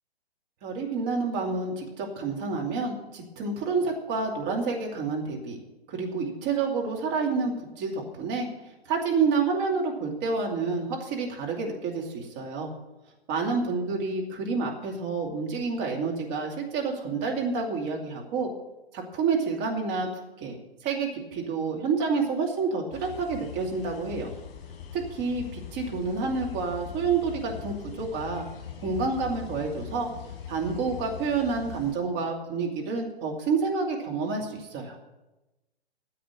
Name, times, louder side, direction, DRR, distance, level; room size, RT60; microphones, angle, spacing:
voice 1, 0.6-5.6 5.9-8.5 8.9-12.7 13.3-18.5 18.9-20.1 20.4-24.3 24.9-28.4 28.8-30.1 30.5-35.0, right 4 dB, 30° right, 0 dB, 2.5 m, -29 dB
sound 1, 22.9-31.9, left 9 dB, 35° left, 4.4 m, -41 dB
10.0 x 7.9 x 9.1 m, 1.0 s
figure-of-eight pair, 120°, 32 cm